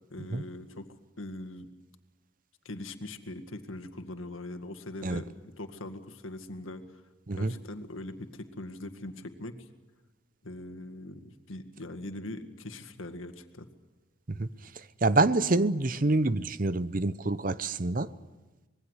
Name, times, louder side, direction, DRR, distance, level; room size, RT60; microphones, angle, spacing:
voice 1, 0.1-1.7 2.7-7.0 7.4-9.7 10.4-13.7, left 1 dB, 90° left, 2.0 m, -41 dB
voice 2, 15.0-18.1, right 2 dB, 45° right, 0.7 m, -26 dB
26.0 x 21.0 x 8.2 m
head